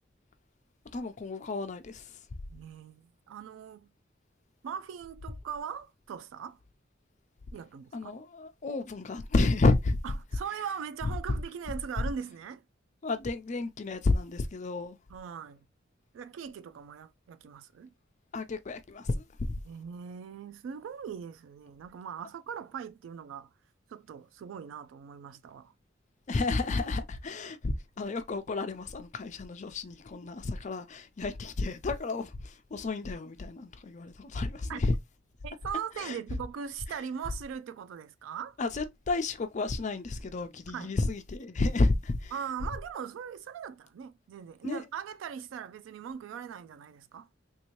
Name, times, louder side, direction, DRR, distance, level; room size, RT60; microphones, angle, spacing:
voice 1, 0.9-2.1 7.9-10.0 13.0-15.0 18.3-19.5 26.3-34.9 36.0-36.2 38.6-42.3 44.6-44.8, left 3 dB, 40° left, 0.5 m, -31 dB
voice 2, 2.5-3.9 4.6-6.6 7.5-8.1 10.0-12.6 15.1-15.6 16.1-17.9 19.7-23.5 23.9-25.7 34.7-34.8 35.4-38.6 40.7-40.9 42.3-47.3, right 7 dB, 85° right, 0.3 m, -40 dB
3.4 x 2.7 x 3.0 m
head